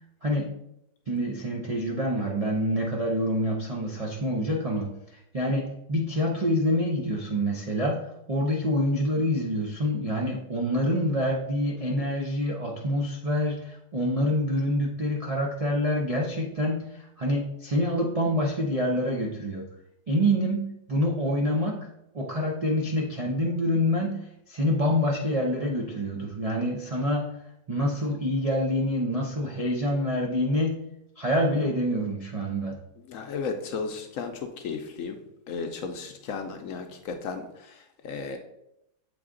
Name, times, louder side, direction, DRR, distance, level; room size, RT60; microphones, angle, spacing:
voice 1, 0.2-0.5 1.1-8.0 8.3-16.8 17.2-19.7 20.1-21.9 22.1-27.3 27.7-30.8 31.2-32.8, equal, 50° right, -2 dB, 0.4 m, -26 dB
voice 2, 33.1-35.2 35.5-38.4, left 5 dB, 65° left, 5 dB, 0.9 m, -34 dB
7.7 x 3.4 x 3.7 m, 0.81 s
omnidirectional pair, 1.7 m